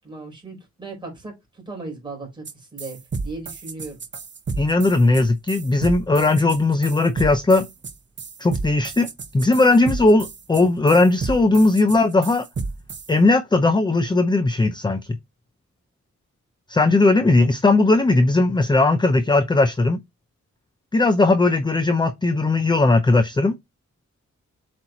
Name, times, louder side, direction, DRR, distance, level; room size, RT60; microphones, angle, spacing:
voice 1, 0.0-2.4 2.7-4.0, right 3 dB, 15° right, 3.8 m, -37 dB
sound 1, 2.4-2.5 2.8-13.1, right 4 dB, 40° right, 0.8 m, -31 dB
voice 2, 4.6-7.7 8.4-12.5 13.1-15.0 16.7-20.0 20.9-23.6, left 2 dB, 15° left, 0.5 m, -18 dB
7.6 x 4.3 x 2.9 m
wide cardioid pair, 180°, 29 cm